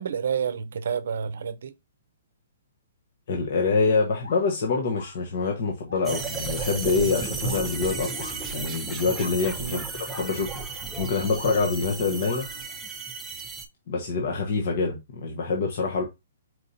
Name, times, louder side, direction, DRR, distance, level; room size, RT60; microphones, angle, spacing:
voice 1, 0.0-1.7 9.6-9.9, right 7 dB, 70° right, 0.6 m, -29 dB
voice 2, 3.3-8.1 8.5-12.5 13.9-16.0, left 4 dB, 55° left, 1.0 m, -26 dB
sound 1, 4.2-6.3 6.7-6.8 7.1-7.2 7.4-9.7 10.1-11.9 12.2-12.8, left 3 dB, 80° left, 3.1 m, -45 dB
sound 2, 6.0-13.6, right 4 dB, 10° right, 0.7 m, -34 dB
4.5 x 4.1 x 2.6 m
hypercardioid pair, 150°, 0 cm